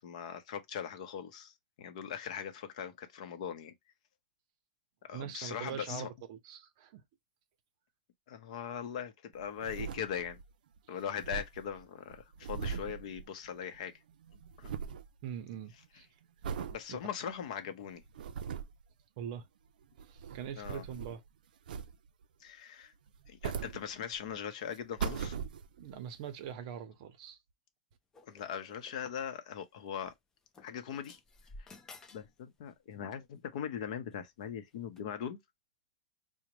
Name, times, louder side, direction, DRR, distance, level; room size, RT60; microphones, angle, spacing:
voice 1, 0.0-3.7 5.1-6.1 8.3-10.4 10.9-13.9 14.6-14.7 16.6-18.0 20.6-20.8 22.4-22.9 23.3-25.4 28.3-30.1 30.6-31.2 32.1-35.4, left 8 dB, 55° left, 0.7 m, -40 dB
voice 2, 5.1-7.0 15.2-16.1 16.9-17.0 19.2-19.5 20.1-21.2 25.8-27.4, right 9 dB, 40° right, 0.6 m, -43 dB
sound 1, 9.4-10.5 10.8-10.9 11.0-13.8 14.1-15.1 15.5-15.9 16.4-16.8 17.3-17.4 18.0-18.8 19.8-21.3 21.7-22.2 23.1-24.3 24.7-25.9 26.5-26.6, right 6 dB, 85° right, 0.4 m, -40 dB
sound 2, 28.1-29.1 30.0-30.2 30.5-32.3 32.6-33.0 33.8-34.1 34.9-35.0, left 2 dB, 10° left, 0.4 m, -54 dB
4.8 x 2.1 x 2.9 m
supercardioid pair, 170°, 5 cm